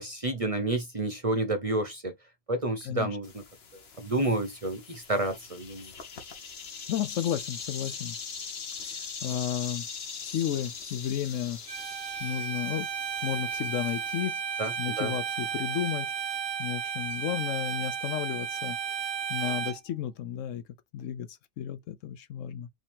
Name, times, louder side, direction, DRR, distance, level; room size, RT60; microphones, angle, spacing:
voice 1, 0.0-2.1 2.5-3.4 4.0-5.9 14.6-15.1, right 2 dB, 30° right, 0.8 m, -30 dB
sound 1, 3.2-14.2, left 5 dB, 50° left, 1.2 m, -41 dB
voice 2, 6.9-8.2 8.8-9.9 10.2-11.6 12.2-12.9 13.2-14.4 14.8-16.1 16.6-18.8 19.3-20.6 20.9-22.7, left 10 dB, 70° left, 0.9 m, -33 dB
Bowed string instrument, 11.7-19.8, right 7 dB, 85° right, 1.3 m, -33 dB
5.1 x 2.8 x 3.4 m
omnidirectional pair, 1.4 m